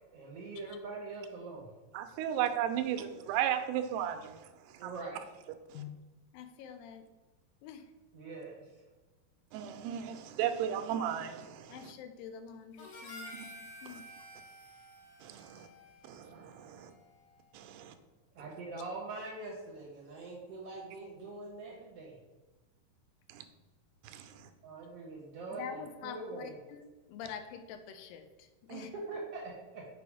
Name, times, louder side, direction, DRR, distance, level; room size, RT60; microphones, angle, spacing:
voice 1, 0.1-1.7 4.8-5.2 8.1-8.7 18.3-22.2 24.6-26.5 28.7-29.9, right 3 dB, 70° right, -3 dB, 1.4 m, -43 dB
voice 2, 1.9-4.4 4.8-4.9 5.7-5.8 9.5-11.9 13.9-14.0 15.2-15.7 16.1-16.7 17.5-17.9 23.3-23.4 24.0-24.5, right 10 dB, 85° right, 8 dB, 2.7 m, -35 dB
voice 3, 6.3-7.0 7.6-7.8 11.7-13.5 13.8-14.0 25.5-28.9, left 8 dB, 85° left, 8 dB, 2.1 m, -46 dB
Harmonica, 12.8-17.3, equal, 60° left, 3.1 m, -51 dB
6.9 x 5.0 x 4.8 m, 1.2 s
omnidirectional pair, 4.6 m